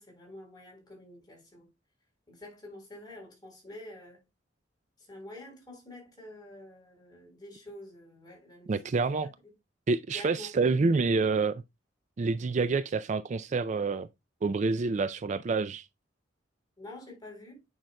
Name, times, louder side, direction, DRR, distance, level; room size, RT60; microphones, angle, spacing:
voice 1, 0.0-1.7 2.3-4.2 5.0-8.9 9.2-9.5 10.1-10.5 16.8-17.6, left 1 dB, 25° left, 3.9 m, -48 dB
voice 2, 8.7-9.3 9.9-11.5 12.2-14.1 14.4-15.9, right 4 dB, 40° right, 0.4 m, -27 dB
8.9 x 5.5 x 2.2 m
head